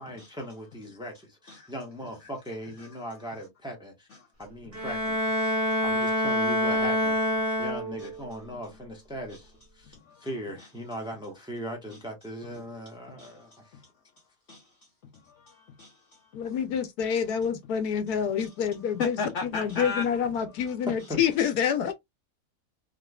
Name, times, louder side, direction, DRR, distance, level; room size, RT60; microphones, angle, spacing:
voice 1, 0.0-4.1 4.4-5.2 5.8-7.2 7.6-9.9 10.2-13.8 20.9-21.2, equal, 5° right, 0.9 m, -39 dB
Bowed string instrument, 4.7-8.2, left 1 dB, 45° right, 1.1 m, -26 dB
voice 2, 5.4-5.8 8.0-8.1 9.3-9.4 9.9-10.3 10.6-10.7 11.9-12.0 13.2-13.9 14.5-14.7 15.0-16.4 17.1-17.2 18.4-18.5 19.0-20.1, left 5 dB, 60° left, 0.8 m, -37 dB
voice 3, 16.3-19.2 19.5-21.9, left 8 dB, 75° left, 1.2 m, -27 dB
3.5 x 3.0 x 2.2 m
omnidirectional pair, 1.7 m